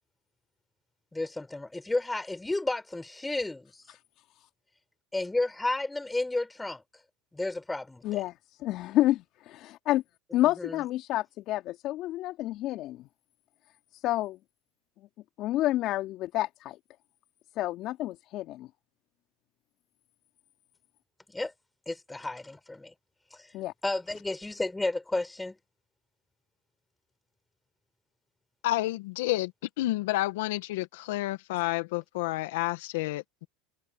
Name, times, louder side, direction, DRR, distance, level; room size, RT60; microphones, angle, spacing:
voice 1, 1.1-3.7 5.1-6.8 7.3-8.2 10.6-10.8 21.3-21.5 21.9-22.9 23.3-23.5 23.8-25.6, left 2 dB, 10° left, 4.5 m, -32 dB
voice 2, 8.0-8.3 8.6-10.0 10.3-13.1 13.9-14.4 15.4-16.8 17.6-18.7 23.5-23.7, left 15 dB, 55° left, 3.1 m, -29 dB
voice 3, 28.6-29.5 29.8-33.5, left 18 dB, 75° left, 1.8 m, -30 dB
hypercardioid pair, 95°, 0 cm